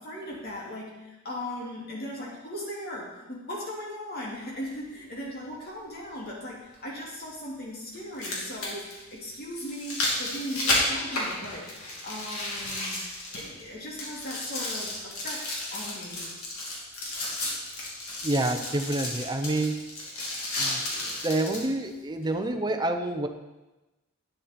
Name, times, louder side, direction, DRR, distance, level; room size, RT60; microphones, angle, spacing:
voice 1, 0.0-13.0 13.4-16.3, equal, 45° left, -4 dB, 2.4 m, -38 dB
sound 1, 4.7-4.8 6.7-6.8 8.0-13.7 14.0-21.7 22.2-22.3, left 2 dB, 80° left, 2.9 m, -32 dB
voice 2, 18.2-19.8 20.6-20.8 21.2-23.3, right 2 dB, 20° right, 6 dB, 0.8 m, -28 dB
11.5 x 9.4 x 4.3 m, 1.1 s
head